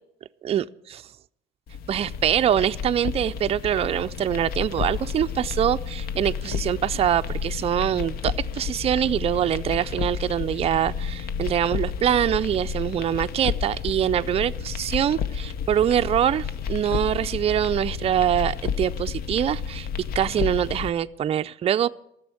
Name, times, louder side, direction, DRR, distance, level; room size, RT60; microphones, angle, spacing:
voice 1, 0.4-1.0 1.9-19.9 20.1-21.9, right 10 dB, 35° right, 0.4 m, -24 dB
sound 1, 1.7-20.9, left 7 dB, 65° left, 0.8 m, -31 dB
14.0 x 7.0 x 9.7 m
cardioid pair, 110°, 17 cm